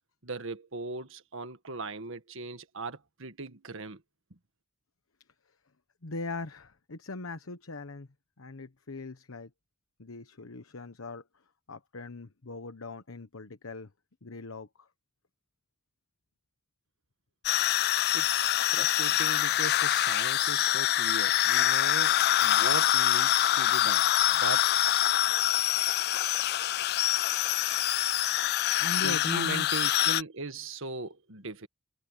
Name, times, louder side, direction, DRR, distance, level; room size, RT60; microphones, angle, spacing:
voice 1, 0.2-4.0 18.1-24.0 24.3-24.7 29.0-31.7, right 3 dB, 65° right, 1.7 m, -39 dB
voice 2, 6.0-8.1 8.4-9.5 10.0-11.2 11.7-13.9 14.2-14.9 28.6-29.7, left 3 dB, 75° left, 1.1 m, -40 dB
sound 1, 17.4-30.2, left 13 dB, 50° left, 0.3 m, -25 dB
head